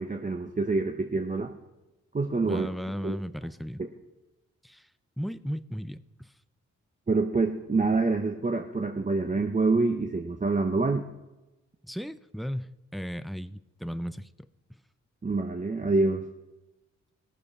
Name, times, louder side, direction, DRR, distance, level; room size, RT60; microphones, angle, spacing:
voice 1, 0.0-1.5 2.1-2.7 3.0-3.2 7.1-11.0 15.2-16.2, right 3 dB, 25° right, 5 dB, 0.8 m, -26 dB
voice 2, 2.4-3.8 4.6-4.9 5.2-6.3 11.8-14.5, equal, ahead, 12 dB, 0.5 m, -36 dB
18.5 x 7.0 x 4.9 m, 1.0 s
cardioid pair, 65°, 30 cm